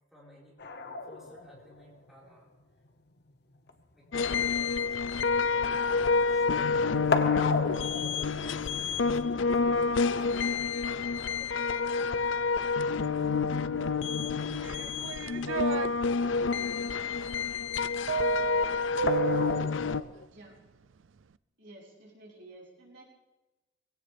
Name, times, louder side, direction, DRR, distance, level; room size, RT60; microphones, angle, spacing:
voice 1, 0.1-2.5 3.6-6.7 7.9-12.0 17.2-17.5 18.0-18.3, equal, ahead, -6 dB, 4.7 m, -56 dB
sound 1, 0.6-6.3 6.6-13.6 15.0-15.1 15.5-15.6 19.1-20.3, left 3 dB, 60° left, 1.0 m, -37 dB
sound 2, 4.1-20.0, left 5 dB, 80° left, 0.5 m, -28 dB
sound 3, 14.6-15.9 18.1-19.7, right 7 dB, 85° right, 0.5 m, -32 dB
voice 2, 20.3-20.6 21.6-23.0, right 2 dB, 65° right, -4 dB, 5.4 m, -51 dB
22.5 x 17.5 x 3.5 m, 1.1 s
head